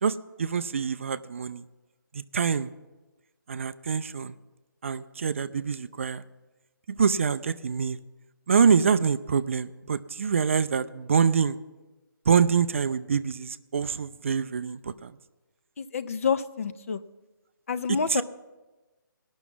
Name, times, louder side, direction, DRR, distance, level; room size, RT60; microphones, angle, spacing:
voice 1, 0.0-1.6 2.1-2.7 3.5-4.3 4.8-6.2 7.0-8.0 8.5-11.6 12.3-15.1 18.1-18.2, right 6 dB, 35° right, 13 dB, 0.3 m, -25 dB
voice 2, 15.8-17.0 17.7-18.2, left 6 dB, 40° left, 12 dB, 0.5 m, -28 dB
17.5 x 6.1 x 7.0 m, 1.1 s
hypercardioid pair, 160°, 11 cm